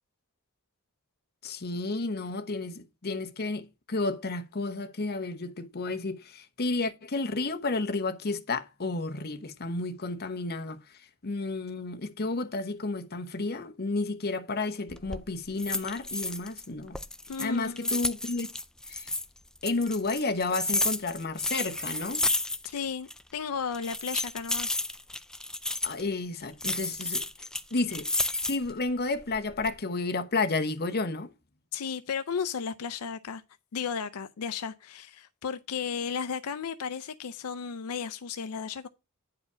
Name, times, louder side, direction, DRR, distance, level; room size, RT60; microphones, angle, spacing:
voice 1, 1.4-10.8 11.2-17.0 17.4-18.5 18.9-19.1 19.6-22.2 25.8-27.3 27.7-31.3, left 3 dB, 45° left, 0.9 m, -31 dB
sound 1, 14.9-15.2 15.6-16.7 16.9-19.3 19.7-22.8 23.1-23.2 23.7-26.0 26.6-28.7 29.2-29.7, left 2 dB, 5° left, 0.3 m, -31 dB
voice 2, 17.3-17.9 22.6-24.8 31.7-33.4 33.7-38.9, left 6 dB, 75° left, 0.5 m, -34 dB
9.6 x 4.9 x 4.9 m
head